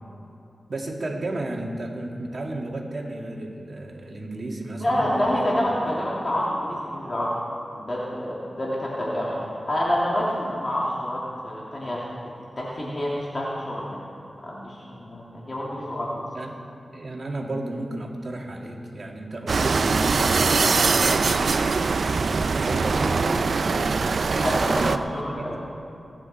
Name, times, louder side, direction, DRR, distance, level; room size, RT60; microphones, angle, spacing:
voice 1, 0.7-5.5 16.3-16.6 16.9-20.4 21.0-21.8 22.6-25.6, right 2 dB, 55° right, 0 dB, 2.2 m, -33 dB
voice 2, 4.8-7.3 7.8-12.0 12.6-13.9 14.4-16.2 24.4-25.6, left 1 dB, 45° left, -6 dB, 2.7 m, -27 dB
sound 1, 19.5-25.0, right 4 dB, 70° right, 0.5 m, -22 dB
22.5 x 9.8 x 4.4 m, 2.7 s
cardioid pair, 60°, 0 cm